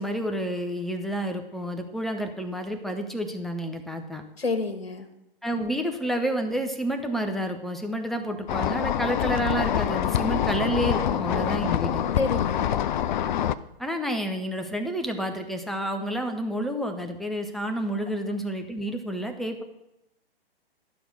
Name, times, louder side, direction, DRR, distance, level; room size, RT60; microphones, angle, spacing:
voice 1, 0.0-4.2 5.4-12.1 13.8-19.6, right 1 dB, ahead, 5 dB, 0.6 m, -29 dB
voice 2, 4.4-5.1 12.2-12.7, left 3 dB, 85° left, 7 dB, 1.5 m, -28 dB
sound 1, 8.5-13.5, left 10 dB, 50° left, 0.5 m, -25 dB
11.5 x 5.9 x 5.3 m, 0.88 s
figure-of-eight pair, 120°, 30 cm